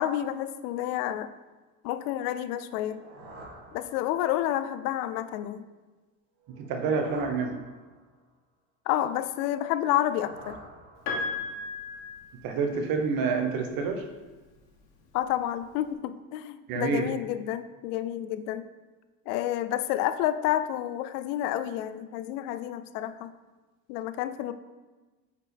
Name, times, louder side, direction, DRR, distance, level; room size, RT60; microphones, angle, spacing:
voice 1, 0.0-1.3 1.8-3.0 3.7-5.7 8.9-10.6 15.1-18.6 19.3-23.3 23.9-24.5, left 12 dB, 80° left, 12 dB, 0.6 m, -29 dB
sound 1, 2.6-4.5 6.4-8.2 9.7-11.5, right 1 dB, 70° right, 2.1 m, -49 dB
voice 2, 6.6-7.6 12.4-14.0 16.7-17.1, right 5 dB, 50° right, 5 dB, 1.0 m, -28 dB
Piano, 11.1-13.1 14.3-14.4, left 3 dB, 60° left, 1.7 m, -35 dB
8.2 x 4.9 x 3.5 m, 1.2 s
supercardioid pair, 135°, 46 cm